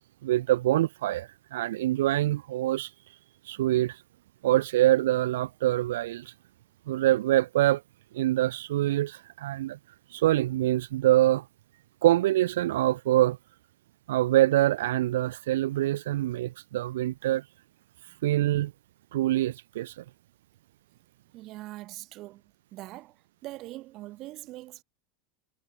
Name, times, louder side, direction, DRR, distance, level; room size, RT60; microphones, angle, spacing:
voice 1, 0.2-2.9 3.4-4.0 4.4-6.3 6.9-7.8 8.1-9.8 10.1-11.4 12.0-13.4 14.1-17.4 18.2-18.7 19.1-20.0, right 14 dB, 85° right, 1.1 m, -25 dB
voice 2, 21.3-22.4 22.7-23.2 23.4-24.8, right 17 dB, 30° right, 5.0 m, -42 dB
supercardioid pair, 180°, 0 cm